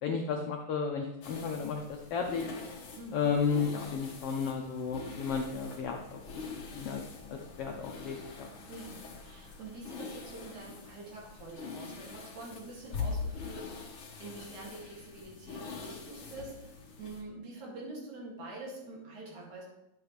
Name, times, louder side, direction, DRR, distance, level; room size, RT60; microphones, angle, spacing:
voice 1, 0.0-2.5 3.1-6.2 6.7-7.0 7.3-8.5, left 5 dB, 75° left, 2 dB, 1.3 m, -33 dB
sound 1, 1.2-17.2, left 4 dB, 55° left, 1.6 m, -43 dB
voice 2, 2.9-3.3 8.7-19.6, right 2 dB, 70° right, -3 dB, 3.7 m, -46 dB
10.5 x 7.5 x 3.2 m, 0.90 s
omnidirectional pair, 3.5 m